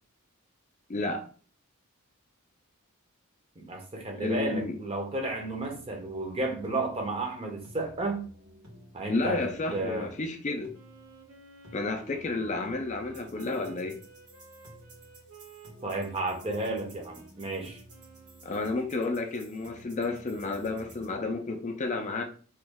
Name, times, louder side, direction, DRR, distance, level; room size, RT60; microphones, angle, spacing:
voice 1, 0.9-1.3 4.1-4.8 9.1-10.7 11.7-14.0 18.4-22.2, left 3 dB, 30° left, 4 dB, 0.4 m, -31 dB
voice 2, 3.6-8.2 8.9-9.4 9.7-10.1 15.8-17.8, right 2 dB, 25° right, 2 dB, 0.6 m, -32 dB
sound 1, 5.1-21.1, equal, 90° right, 1.4 m, -53 dB
Wind instrument woodwind instrument, 10.7-18.8, right 3 dB, 70° right, 0.9 m, -52 dB
3.0 x 2.3 x 3.4 m, 0.41 s
head